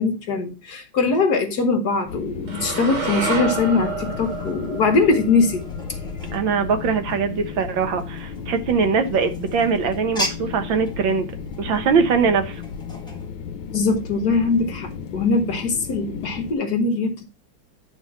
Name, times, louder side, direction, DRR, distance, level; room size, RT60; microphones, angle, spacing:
voice 1, 0.0-5.6 11.7-11.8 13.7-17.2, left 3 dB, 55° left, 1.4 m, -21 dB
sound 1, 2.1-16.5, left 7 dB, 70° left, 1.4 m, -34 dB
sound 2, 2.5-6.7, right 4 dB, 85° right, 2.9 m, -30 dB
sound 3, 3.2-13.3, left 1 dB, ahead, 1.4 m, -38 dB
voice 2, 6.3-11.3 11.6-12.6, right 5 dB, 70° right, 1.7 m, -21 dB
9.5 x 3.7 x 5.6 m
omnidirectional pair, 2.3 m